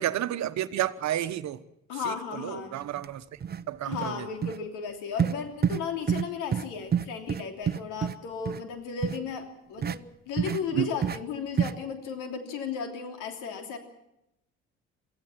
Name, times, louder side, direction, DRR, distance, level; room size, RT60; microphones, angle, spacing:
voice 1, 0.0-1.6 2.0-3.2 3.7-4.3 10.7-10.9, right 12 dB, 60° right, 1.2 m, -30 dB
voice 2, 1.9-2.8 3.8-13.8, left 6 dB, 80° left, 3.2 m, -35 dB
sound 1, 3.0-3.1 3.4-3.6 3.9-4.1 4.4-4.6 5.2-5.4 5.6-5.8 6.1-6.3 6.5-6.6 6.9-8.1 8.5-8.6 9.0-9.2 9.8-10.0 10.4-10.6 11.0-11.2 11.6-11.7, right 8 dB, 30° right, 0.7 m, -27 dB
23.5 x 15.0 x 7.4 m
supercardioid pair, 70°, 31 cm